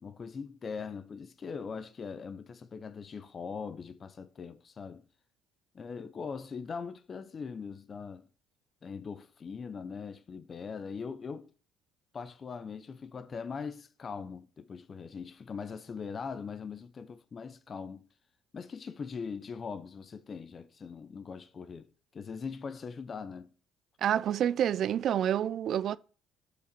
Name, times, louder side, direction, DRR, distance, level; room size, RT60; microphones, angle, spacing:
voice 1, 0.0-5.0 5.7-8.2 8.8-11.5 12.1-18.1 18.5-23.5, left 5 dB, 35° left, 0.6 m, -41 dB
voice 2, 24.0-26.0, right 10 dB, 55° right, 0.3 m, -28 dB
7.1 x 5.0 x 5.2 m
cardioid pair, 115°, 0 cm